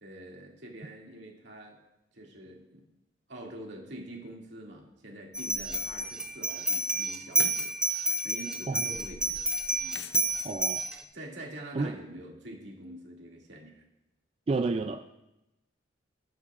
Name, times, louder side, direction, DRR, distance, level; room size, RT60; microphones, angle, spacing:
voice 1, 0.0-1.8 2.1-2.8 3.3-7.7 8.0-9.5 9.8-10.0 11.1-13.8, right 1 dB, 65° right, -1 dB, 2.3 m, -45 dB
sound 1, 5.3-11.0, right 2 dB, 5° right, 0.7 m, -30 dB
sound 2, 5.9-6.0 7.3-7.7 9.9-10.3, left 6 dB, 65° left, 0.6 m, -42 dB
voice 2, 10.4-10.8 11.8-11.9 14.5-15.2, right 3 dB, 30° right, 7 dB, 0.3 m, -30 dB
19.0 x 9.8 x 2.5 m, 0.93 s
head